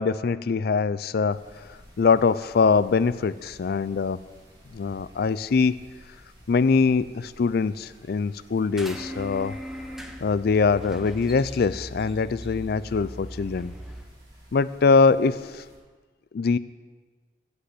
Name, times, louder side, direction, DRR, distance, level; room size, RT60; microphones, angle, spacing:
voice 1, 0.0-1.4 2.0-4.2 4.7-5.8 6.5-9.5 10.2-13.7 14.5-15.6 16.3-16.6, left 4 dB, 60° left, 16 dB, 0.4 m, -23 dB
sound 1, 1.3-15.8, equal, 25° right, 3.1 m, -53 dB
sound 2, 8.8-14.0, equal, ahead, 1.0 m, -39 dB
14.5 x 5.2 x 8.2 m, 1.4 s
head